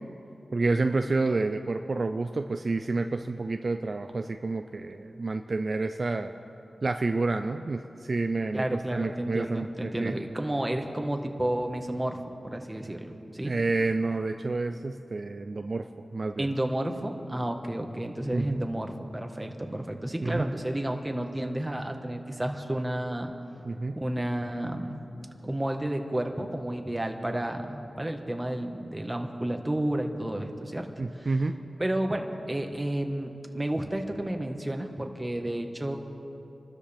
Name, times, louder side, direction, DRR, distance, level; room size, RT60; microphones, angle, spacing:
voice 1, 0.5-6.3 6.8-10.1 13.4-15.8 16.1-16.5 18.3-18.6 20.2-20.5 23.6-24.0 31.0-31.6, right 3 dB, 55° right, 6 dB, 0.5 m, -29 dB
voice 2, 8.5-12.2 12.4-13.5 16.4-23.3 23.9-25.1 25.4-30.9 31.1-31.3 31.8-36.0, right 1 dB, 20° right, 4 dB, 1.5 m, -31 dB
27.5 x 13.0 x 3.5 m, 2.8 s
cardioid pair, 60°, 0 cm